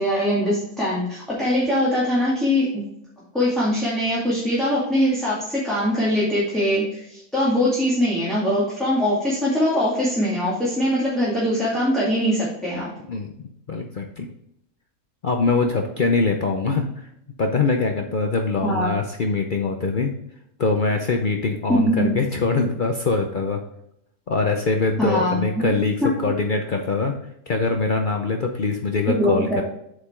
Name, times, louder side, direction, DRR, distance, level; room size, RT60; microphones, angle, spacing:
voice 1, 0.0-2.8 3.3-12.9 18.6-18.9 21.8-22.1 25.0-26.1 29.1-29.6, equal, ahead, -9 dB, 2.1 m, -22 dB
voice 2, 13.1-14.3 15.2-17.1 17.4-20.1 20.6-23.6 24.3-27.1 27.5-29.6, left 3 dB, 70° left, 3 dB, 0.4 m, -23 dB
8.4 x 5.1 x 3.7 m, 0.77 s
omnidirectional pair, 1.7 m